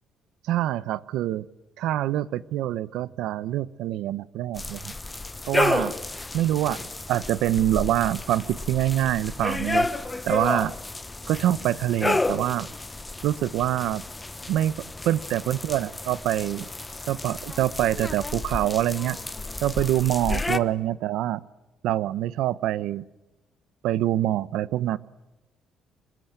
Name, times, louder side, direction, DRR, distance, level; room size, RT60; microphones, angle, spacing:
voice 1, 0.4-1.5 1.8-4.9 5.5-5.9 6.3-6.8 7.1-9.9 10.2-10.7 11.3-12.7 13.2-14.0 14.5-14.7 15.0-16.7 17.1-19.2 19.6-21.4 21.8-23.0 23.8-25.0, right 13 dB, 85° right, 18 dB, 0.9 m, -25 dB
sound 1, 4.6-20.6, left 2 dB, 10° left, 1.0 m, -31 dB
26.5 x 23.0 x 9.1 m, 1.0 s
cardioid pair, 160°, 0 cm